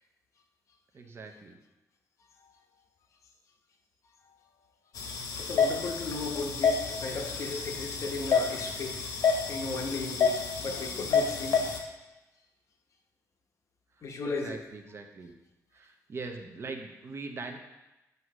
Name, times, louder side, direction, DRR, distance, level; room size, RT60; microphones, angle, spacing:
voice 1, 0.9-1.6 14.2-15.3 15.7-17.6, right 3 dB, 45° right, 5 dB, 0.7 m, -41 dB
sound 1, 5.0-11.8, left 5 dB, 85° left, 0.9 m, -29 dB
voice 2, 5.4-9.0 9.5-11.8 14.0-14.6, left 3 dB, 55° left, 2 dB, 0.9 m, -36 dB
7.9 x 2.8 x 6.0 m, 1.0 s
cardioid pair, 125°, 6 cm